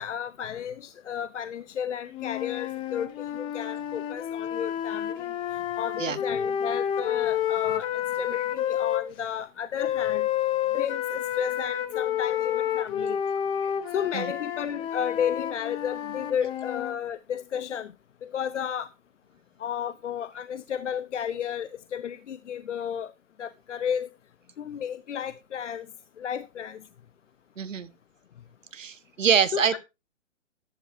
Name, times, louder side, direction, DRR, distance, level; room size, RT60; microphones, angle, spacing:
voice 1, 0.0-10.3 10.7-13.2 13.9-17.9 18.2-18.9 19.6-23.1 23.4-24.1 24.6-25.9 26.2-26.8 29.5-29.8, left 8 dB, 65° left, 0.9 m, -33 dB
sound 1, 2.1-9.0 9.8-16.9, left 10 dB, 15° left, 0.8 m, -29 dB
voice 2, 13.8-14.3 27.6-27.9 28.7-29.8, right 7 dB, 80° right, 1.6 m, -25 dB
14.5 x 11.0 x 2.7 m
hypercardioid pair, 150°, 38 cm